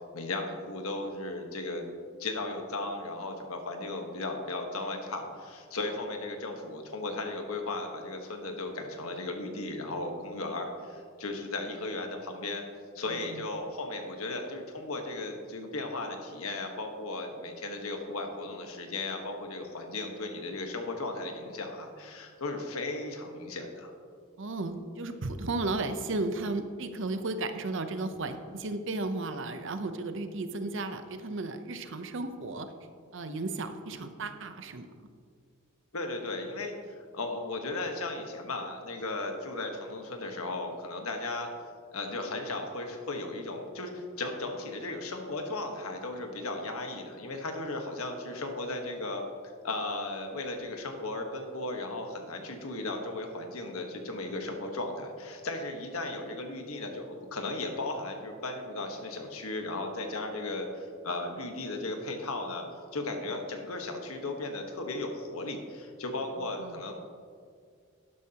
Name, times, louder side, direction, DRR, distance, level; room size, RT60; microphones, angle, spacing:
voice 1, 0.1-1.8 2.2-12.6 12.9-23.9 35.9-41.5 41.9-49.2 49.6-62.6 62.9-66.9, left 2 dB, 85° left, 4 dB, 1.3 m, -36 dB
voice 2, 13.1-13.4 24.4-32.7 33.1-34.9 66.4-66.8, right 2 dB, 60° right, 9 dB, 0.7 m, -34 dB
12.0 x 11.0 x 2.9 m, 2.1 s
head